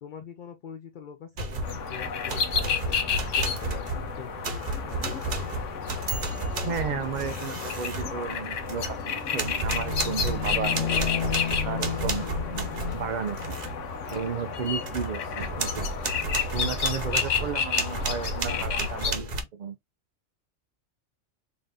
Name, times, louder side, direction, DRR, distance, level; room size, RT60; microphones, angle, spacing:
voice 1, 0.0-5.5 18.5-18.6 19.1-19.5, left 8 dB, 55° left, 0.6 m, -44 dB
sound 1, 1.4-1.9 2.3-9.0 9.4-13.7 14.1-14.3 14.7-19.4, right 2 dB, 40° right, 0.8 m, -32 dB
Fire, 1.5-18.7, right 7 dB, 90° right, 1.0 m, -45 dB
sound 2, 1.6-19.1, left 7 dB, 75° left, 1.1 m, -31 dB
voice 2, 6.6-10.8 11.6-13.6 14.1-15.9 16.5-19.8, right 6 dB, 60° right, 0.4 m, -34 dB
3.7 x 2.6 x 3.4 m
omnidirectional pair, 1.3 m